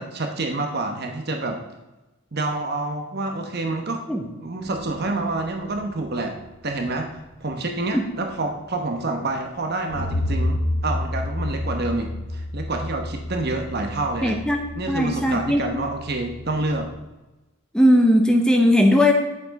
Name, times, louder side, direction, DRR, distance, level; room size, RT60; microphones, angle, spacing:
voice 1, 0.0-1.6 2.3-4.0 4.4-6.4 6.6-14.4 14.8-16.9, right 2 dB, 50° right, 3 dB, 1.0 m, -28 dB
sound 1, 4.7-7.4 8.4-8.5 9.9-17.0, left 1 dB, 45° left, 1.1 m, -30 dB
voice 2, 14.2-14.6 14.9-15.6 17.7-19.1, left 1 dB, 5° left, 3 dB, 0.8 m, -18 dB
10.5 x 7.4 x 5.2 m, 1.1 s
head